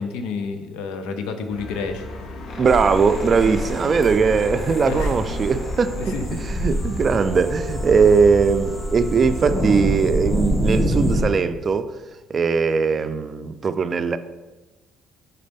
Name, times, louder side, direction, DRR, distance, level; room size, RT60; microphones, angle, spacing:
voice 1, 0.0-2.1 4.8-5.1 6.0-6.8, left 4 dB, 90° left, 0.6 m, -30 dB
sound 1, 1.5-9.9, left 2 dB, 65° left, 1.1 m, -38 dB
sound 2, 2.5-7.9, left 2 dB, 40° left, 0.8 m, -38 dB
sound 3, 2.6-11.2, equal, 5° left, 1.7 m, -26 dB
voice 2, 2.6-6.2 6.5-11.9 12.3-14.2, right 5 dB, 40° right, 0.4 m, -20 dB
5.2 x 4.1 x 5.2 m
cardioid pair, 90°, 0 cm